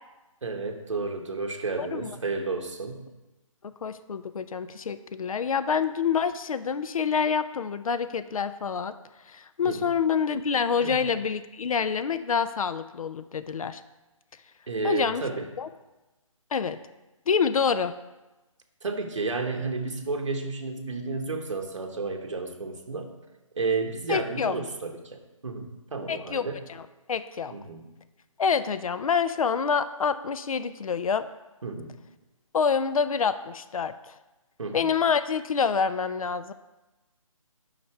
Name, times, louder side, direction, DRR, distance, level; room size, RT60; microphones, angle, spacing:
voice 1, 0.4-3.1 9.6-10.0 10.8-11.0 14.7-15.5 18.8-23.1 23.5-26.6 27.5-27.8 31.6-31.9 34.6-34.9, right 3 dB, 60° right, 4 dB, 1.1 m, -32 dB
voice 2, 1.8-2.1 3.8-8.9 9.3-13.8 14.8-15.2 15.6-15.7 16.5-16.8 17.3-17.9 24.1-24.5 26.1-26.8 27.1-27.5 28.4-31.3 32.5-34.1 34.7-36.5, left 6 dB, 80° left, 12 dB, 0.4 m, -27 dB
6.5 x 5.7 x 4.6 m, 1.1 s
hypercardioid pair, 180°, 18 cm